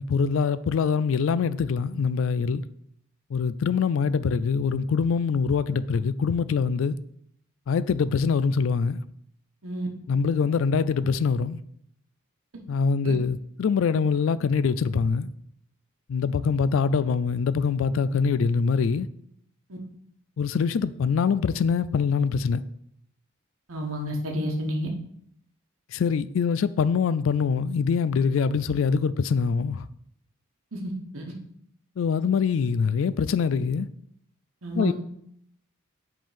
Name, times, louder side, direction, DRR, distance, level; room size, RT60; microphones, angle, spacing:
voice 1, 0.0-2.6 3.3-7.0 7.7-9.0 10.1-11.6 12.7-15.3 16.1-19.1 20.4-22.6 25.9-29.9 32.0-33.9 34.7-34.9, left 5 dB, 70° left, 0.3 m, -24 dB
voice 2, 23.7-24.9 30.7-31.3 34.6-34.9, equal, 85° right, 1.2 m, -30 dB
7.8 x 3.7 x 5.0 m
head